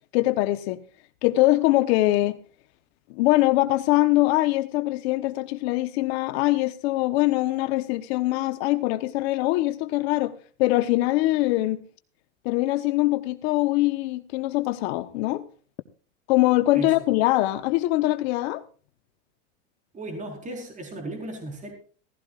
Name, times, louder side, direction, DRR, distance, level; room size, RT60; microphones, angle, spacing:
voice 1, 0.1-0.8 1.2-2.4 3.1-10.3 10.6-11.8 12.4-15.4 16.3-18.6, left 18 dB, 55° left, 1.1 m, -23 dB
voice 2, 19.9-21.7, right 2 dB, 20° right, 4.4 m, -35 dB
17.0 x 15.5 x 2.4 m
supercardioid pair, 130°, 38 cm